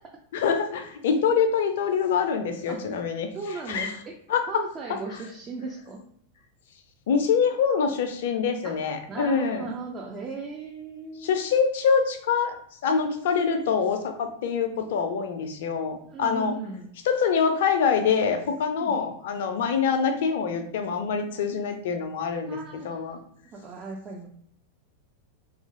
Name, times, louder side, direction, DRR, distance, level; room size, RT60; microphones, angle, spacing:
voice 1, 0.3-4.0 4.3-4.6 4.9-5.3 7.1-9.7 11.2-12.5 12.8-16.6 17.0-23.2, left 6 dB, 55° left, 6 dB, 0.4 m, -25 dB
voice 2, 3.3-4.2 4.5-6.0 8.6-8.8 9.1-11.5 16.1-16.9 18.8-19.0 19.6-19.7 22.5-23.2 23.4-24.3, right 3 dB, 25° right, 0 dB, 0.4 m, -37 dB
2.9 x 2.4 x 2.7 m, 0.63 s
figure-of-eight pair, 90°, 0 cm